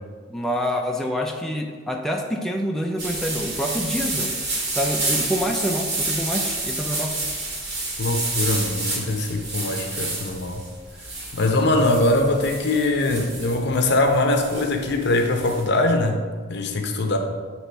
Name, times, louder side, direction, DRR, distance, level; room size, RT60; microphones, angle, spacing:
voice 1, 0.3-4.3 4.7-7.2, equal, ahead, 0 dB, 0.4 m, -26 dB
sound 1, 3.0-15.6, right 2 dB, 60° right, 1.8 m, -29 dB
voice 2, 8.0-10.6 11.3-16.2 16.5-17.2, left 2 dB, 60° left, 4 dB, 0.7 m, -22 dB
8.2 x 3.0 x 4.5 m, 1.5 s
head